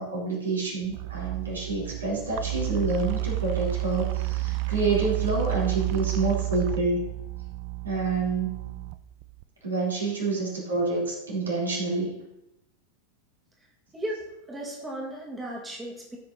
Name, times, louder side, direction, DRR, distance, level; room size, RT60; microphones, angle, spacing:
voice 1, 0.0-7.0 7.8-8.6 9.6-12.1, right 3 dB, 75° right, -4 dB, 3.7 m, -28 dB
sound 1, 0.8-9.4, right 21 dB, 45° right, 0.4 m, -31 dB
voice 2, 13.9-16.2, right 1 dB, 10° right, -2 dB, 2.0 m, -35 dB
14.0 x 5.8 x 4.0 m, 0.86 s
figure-of-eight pair, 90°, 0 cm